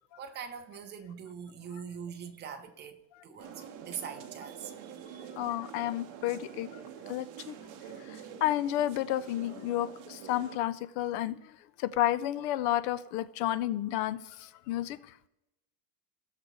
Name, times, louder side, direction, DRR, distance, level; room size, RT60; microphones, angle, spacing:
voice 1, 0.2-5.3, right 7 dB, 25° right, 0.8 m, -43 dB
sound 1, 3.4-10.6, right 8 dB, 45° right, 1.0 m, -46 dB
voice 2, 5.4-7.6 8.0-11.5 11.8-15.1, left 13 dB, 55° left, 0.5 m, -31 dB
17.0 x 6.7 x 3.1 m
cardioid pair, 170°, 44 cm